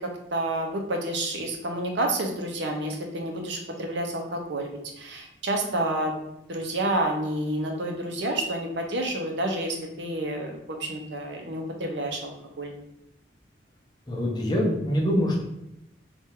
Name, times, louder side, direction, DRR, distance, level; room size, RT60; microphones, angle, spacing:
voice 1, 0.0-4.7 5.0-6.1 6.5-12.7, right 1 dB, 70° right, 2 dB, 0.7 m, -29 dB
voice 2, 14.1-15.4, equal, 20° left, -2 dB, 0.8 m, -24 dB
3.7 x 2.5 x 4.2 m, 0.84 s
head